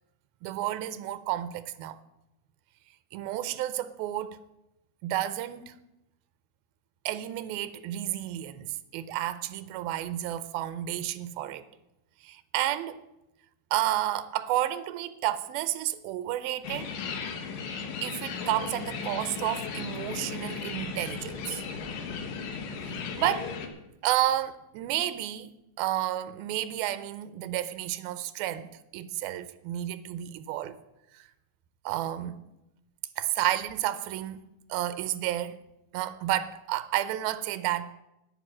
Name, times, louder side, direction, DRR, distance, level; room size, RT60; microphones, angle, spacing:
voice 1, 0.4-2.0 3.1-4.4 5.0-5.7 7.1-11.6 12.2-13.0 13.7-16.9 18.0-21.6 22.8-23.5 24.0-25.5 25.8-30.8 31.1-31.3 31.9-32.4 33.2-34.4 34.7-35.6 35.9-37.9, right 13 dB, 85° right, 2.5 m, -31 dB
sound 1, 16.6-23.7, left 6 dB, 70° left, 2.8 m, -36 dB
10.5 x 9.8 x 7.4 m
omnidirectional pair, 4.3 m